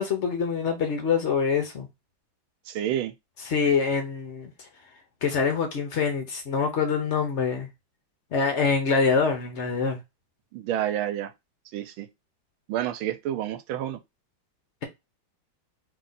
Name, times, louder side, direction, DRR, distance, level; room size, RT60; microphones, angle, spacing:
voice 1, 0.0-1.9 3.4-4.5 5.2-7.7 8.3-10.0, left 5 dB, 70° left, 0.6 m, -25 dB
voice 2, 2.7-3.1 10.5-11.3 11.7-12.1 12.7-14.0, right 11 dB, 80° right, 1.4 m, -29 dB
3.2 x 2.9 x 3.8 m
omnidirectional pair, 2.3 m